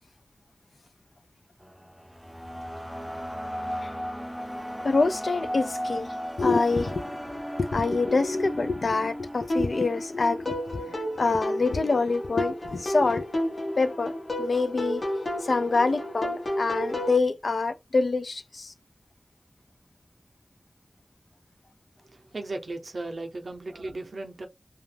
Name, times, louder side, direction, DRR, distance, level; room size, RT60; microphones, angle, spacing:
sound 1, 1.6-11.8, equal, 5° right, 0.3 m, -36 dB
voice 1, 4.8-7.0 7.3-13.2 13.8-14.1 14.4-15.0 15.4-18.7, left 3 dB, 90° left, 0.3 m, -26 dB
sound 2, 9.5-17.2, equal, 70° left, 0.8 m, -32 dB
voice 2, 22.1-24.5, right 2 dB, 85° right, 0.5 m, -36 dB
2.3 x 2.1 x 3.1 m
wide cardioid pair, 45°, 0 cm